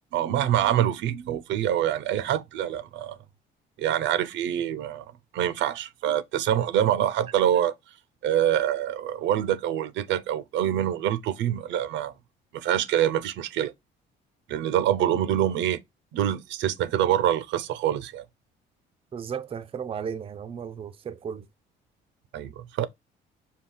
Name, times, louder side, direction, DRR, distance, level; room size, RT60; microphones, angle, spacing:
voice 1, 0.1-3.2 3.8-5.1 5.3-7.7 8.2-12.1 12.5-13.7 14.5-15.8 16.1-18.2 22.3-22.9, right 11 dB, 70° right, 0.6 m, -25 dB
voice 2, 19.1-21.5, right 7 dB, 30° right, 0.5 m, -35 dB
5.4 x 2.3 x 3.8 m
cardioid pair, 95°, 20 cm